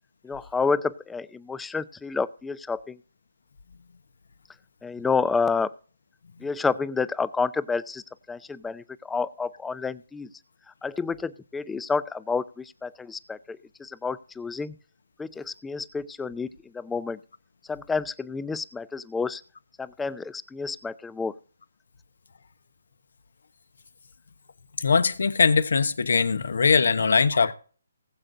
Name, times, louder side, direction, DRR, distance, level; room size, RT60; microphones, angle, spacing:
voice 1, 0.2-3.0 4.8-5.7 6.4-10.3 10.8-14.8 15.2-17.2 17.7-19.4 19.8-21.3, left 4 dB, 5° left, 0.5 m, -29 dB
voice 2, 24.8-27.5, left 5 dB, 70° left, 1.1 m, -21 dB
19.5 x 7.7 x 2.7 m
hypercardioid pair, 150°, 0 cm